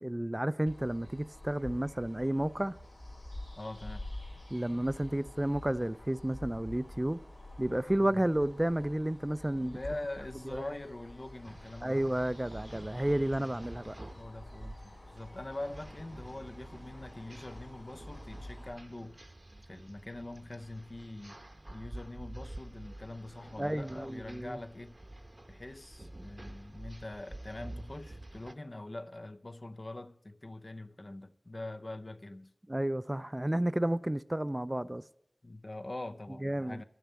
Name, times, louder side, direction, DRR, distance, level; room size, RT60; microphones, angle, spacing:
voice 1, 0.0-2.8 4.5-7.2 7.6-9.8 10.5-10.6 11.8-14.0 23.6-24.6 32.7-35.0 36.4-36.8, right 1 dB, 20° right, 0.3 m, -31 dB
sound 1, 0.7-18.7, left 1 dB, 85° left, 3.3 m, -48 dB
voice 2, 3.6-4.0 8.0-8.2 9.5-12.0 13.4-13.8 14.1-19.2 19.7-21.4 21.7-25.0 25.5-32.5 35.4-36.8, left 2 dB, 45° left, 0.6 m, -43 dB
sound 2, 11.4-28.5, right 1 dB, 40° right, 0.8 m, -49 dB
10.5 x 6.9 x 8.3 m
wide cardioid pair, 45°, 0 cm